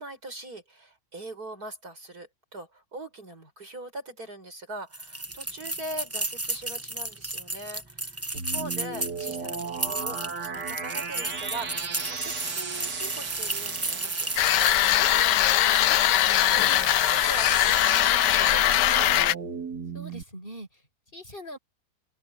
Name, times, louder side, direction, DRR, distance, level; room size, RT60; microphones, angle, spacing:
voice 1, 0.0-14.3 15.0-19.2, right 1 dB, 65° right, 7.4 m, -42 dB
sound 1, 4.9-15.0, right 2 dB, 10° right, 0.8 m, -33 dB
sound 2, 8.3-20.2, right 5 dB, 80° right, 2.8 m, -35 dB
sound 3, 14.4-19.3, left 14 dB, 85° left, 1.3 m, -21 dB
voice 2, 19.9-21.6, equal, 30° left, 7.1 m, -42 dB
open air
omnidirectional pair, 1.8 m